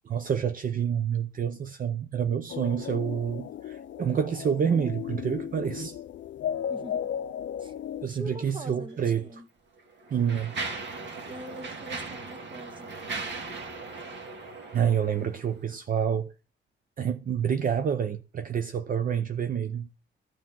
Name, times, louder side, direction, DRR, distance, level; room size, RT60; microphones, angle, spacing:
voice 1, 0.1-6.0 8.0-9.2 10.1-10.5 14.7-16.3 17.0-19.9, right 8 dB, 45° right, 0.6 m, -28 dB
sound 1, 2.5-8.1, left 9 dB, 70° left, 0.5 m, -35 dB
voice 2, 6.7-7.1 7.6-7.7 8.1-9.5 11.2-13.0, equal, 25° right, 1.5 m, -43 dB
Mechanisms, 8.9-9.1 9.8-15.5, right 3 dB, 65° right, 2.3 m, -38 dB
13.0 x 4.9 x 7.4 m
wide cardioid pair, 160°, 20 cm